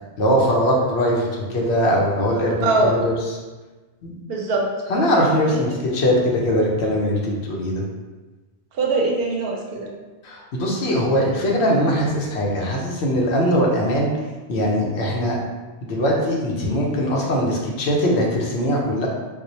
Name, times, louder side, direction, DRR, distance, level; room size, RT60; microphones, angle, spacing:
voice 1, 0.2-3.1 4.0-4.1 4.9-7.8 10.2-14.1 14.5-15.4 15.8-19.1, equal, 80° left, -2 dB, 1.0 m, -21 dB
voice 2, 2.6-3.0 4.3-4.7 5.5-5.6 8.7-9.9, right 3 dB, 70° right, 0 dB, 0.7 m, -22 dB
4.6 x 2.0 x 2.7 m, 1.2 s
omnidirectional pair, 1.1 m